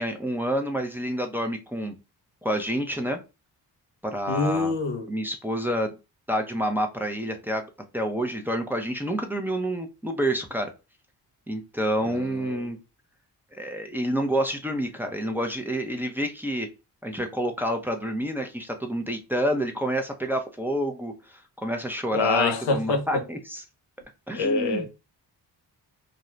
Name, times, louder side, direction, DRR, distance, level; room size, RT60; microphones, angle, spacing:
voice 1, 0.0-1.9 2.4-3.2 4.0-4.7 5.1-5.9 6.3-7.6 7.9-10.7 11.5-12.8 13.5-16.7 17.0-23.6 24.3-24.9, equal, 5° right, 0.7 m, -28 dB
voice 2, 4.3-5.1 12.0-12.6 22.1-23.2 24.3-24.9, left 3 dB, 85° left, 0.9 m, -26 dB
2.6 x 2.3 x 3.1 m
cardioid pair, 70°, 41 cm